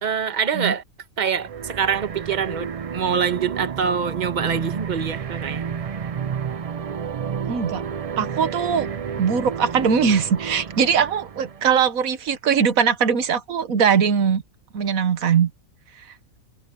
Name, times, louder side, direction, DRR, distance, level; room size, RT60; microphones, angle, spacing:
voice 1, 0.0-0.8 1.2-5.6, right 7 dB, 35° right, 1.2 m, -25 dB
sound 1, 1.3-11.9, right 7 dB, 65° right, 0.3 m, -31 dB
voice 2, 7.5-7.8 8.2-8.9 9.2-14.4 14.7-15.5 16.0-16.1, right 7 dB, 90° right, 1.5 m, -21 dB
omnidirectional pair, 1.4 m